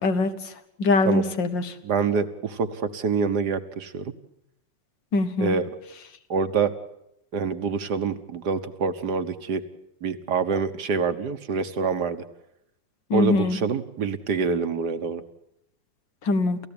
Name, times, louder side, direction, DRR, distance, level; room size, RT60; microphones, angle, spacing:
voice 1, 0.8-1.7 5.1-5.6 13.1-13.6 16.2-16.6, left 3 dB, 85° left, 9 dB, 2.2 m, -22 dB
voice 2, 1.8-4.1 5.4-5.7 6.3-6.7 7.3-9.6 10.0-12.2 13.1-15.2, right 5 dB, 65° right, 9 dB, 1.7 m, -26 dB
29.0 x 15.0 x 8.8 m, 0.82 s
omnidirectional pair, 1.9 m